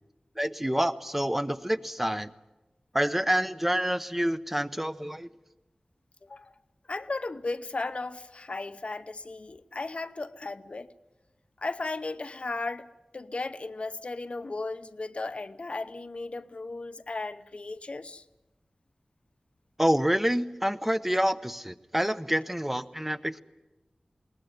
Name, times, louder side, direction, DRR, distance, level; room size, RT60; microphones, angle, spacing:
voice 1, 0.4-2.3 2.9-5.3 19.8-23.4, equal, 10° right, 0.7 m, -27 dB
voice 2, 6.2-6.5 6.9-10.9 11.6-12.9 13.1-18.2, left 3 dB, 55° left, 0.8 m, -35 dB
21.0 x 18.5 x 9.4 m
wide cardioid pair, 75°, 2 cm